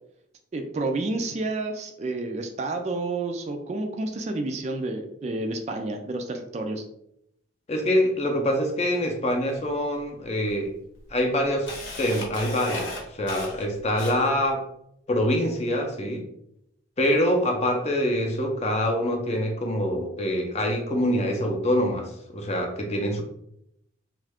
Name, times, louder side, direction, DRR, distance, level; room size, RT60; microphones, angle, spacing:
voice 1, 0.5-6.8, right 2 dB, 35° right, 5 dB, 0.3 m, -30 dB
voice 2, 7.7-10.7 11.1-11.7 12.0-14.7 15.1-16.3 17.0-23.2, equal, 35° left, 3 dB, 0.5 m, -25 dB
Camera, 9.5-9.6 10.5-10.6 11.0-14.5, left 2 dB, 80° left, 1.0 m, -36 dB
3.1 x 2.4 x 3.4 m, 0.76 s
head